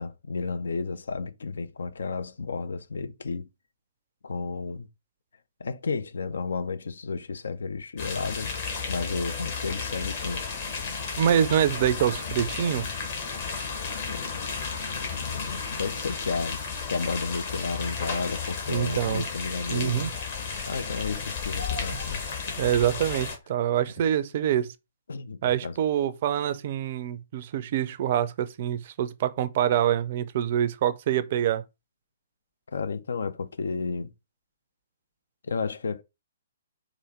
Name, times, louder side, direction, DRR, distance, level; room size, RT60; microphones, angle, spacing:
voice 1, 0.0-3.5 4.2-4.9 5.6-8.5 8.9-10.5 11.3-11.4 13.9-14.4 14.9-16.6 16.9-20.1 20.7-22.8 25.1-25.8 32.7-34.1 35.4-36.0, left 4 dB, 65° left, 0.5 m, -32 dB
sound 1, 8.0-23.4, left 5 dB, 45° left, 1.3 m, -33 dB
voice 2, 11.2-12.9 18.7-19.2 19.7-20.1 22.6-24.7 25.4-31.6, right 10 dB, 45° right, 0.5 m, -25 dB
4.9 x 2.5 x 4.3 m
figure-of-eight pair, 125°, 0 cm